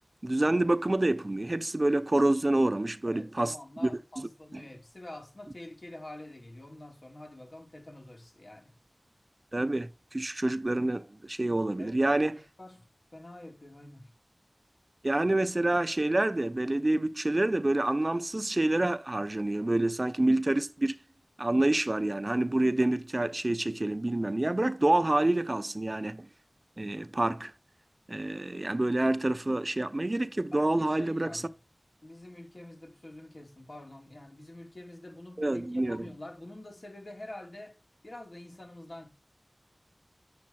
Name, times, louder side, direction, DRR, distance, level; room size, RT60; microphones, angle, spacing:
voice 1, 0.2-3.5 3.8-3.9 4.2-4.6 9.5-12.4 15.0-21.0 21.4-26.3 26.8-27.5 28.1-31.4 35.4-36.1, right 1 dB, 35° right, 0.7 m, -27 dB
voice 2, 3.1-8.7 11.8-14.1 30.5-31.5 32.0-37.8 38.0-39.1, left 1 dB, 50° left, 3.9 m, -46 dB
9.4 x 7.6 x 5.8 m
wide cardioid pair, 65°, 0 cm